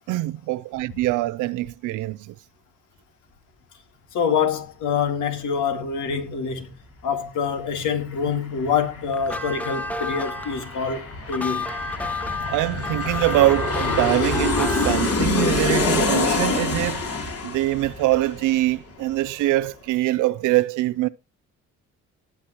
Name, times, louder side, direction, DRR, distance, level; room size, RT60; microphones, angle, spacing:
voice 1, 0.1-2.3 12.5-17.1 17.4-21.1, right 17 dB, 85° right, 0.5 m, -23 dB
voice 2, 4.1-6.7 7.0-11.7, left 6 dB, 80° left, 2.2 m, -25 dB
Aircraft, 7.4-7.5 7.8-19.1 19.4-19.5, left 3 dB, 50° left, 3.1 m, -26 dB
sound 1, 9.1-15.7, left 2 dB, 5° left, 1.1 m, -31 dB
19.0 x 7.2 x 3.0 m
cardioid pair, 90°, 30 cm